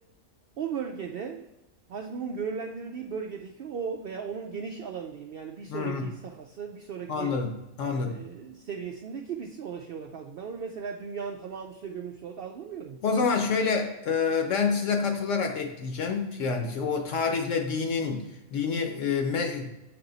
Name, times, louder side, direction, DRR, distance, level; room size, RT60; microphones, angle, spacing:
voice 1, 0.6-1.5 1.9-7.4 7.9-13.0, right 6 dB, 85° right, 3 dB, 0.5 m, -36 dB
voice 2, 5.7-6.1 7.1-7.5 7.8-8.2 13.0-18.2 18.5-19.7, left 5 dB, 65° left, 4 dB, 1.1 m, -27 dB
8.1 x 3.5 x 3.9 m, 0.96 s
omnidirectional pair, 1.5 m